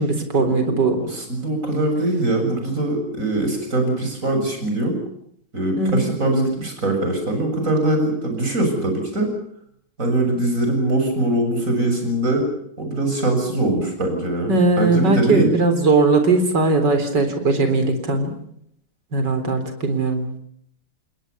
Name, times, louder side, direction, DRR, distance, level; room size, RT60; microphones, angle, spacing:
voice 1, 0.0-1.0 5.8-6.0 14.5-18.3 19.1-20.3, right 3 dB, 55° right, 8 dB, 4.5 m, -19 dB
voice 2, 1.1-4.9 5.5-9.3 10.0-12.5 12.8-15.5, right 1 dB, 35° right, 4 dB, 7.7 m, -22 dB
28.5 x 20.5 x 6.9 m, 0.69 s
omnidirectional pair, 2.3 m